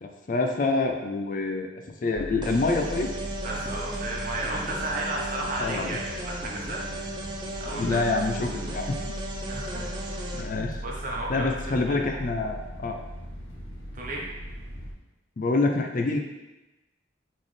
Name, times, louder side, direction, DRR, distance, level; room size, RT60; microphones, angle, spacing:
voice 1, 0.0-1.7 2.0-3.1 5.6-6.0 7.7-9.0 10.3-10.8 11.3-13.0 15.4-16.2, left 3 dB, 45° left, 3 dB, 0.4 m, -26 dB
sound 1, 2.1-14.9, equal, 75° left, 0.8 m, -38 dB
sound 2, 2.4-10.4, right 1 dB, 25° right, 0.4 m, -36 dB
voice 2, 3.4-6.8 7.6-8.0 9.5-10.4 10.8-12.1 13.9-14.2, right 2 dB, 45° right, -3 dB, 0.9 m, -34 dB
4.1 x 3.7 x 3.2 m, 1.0 s
head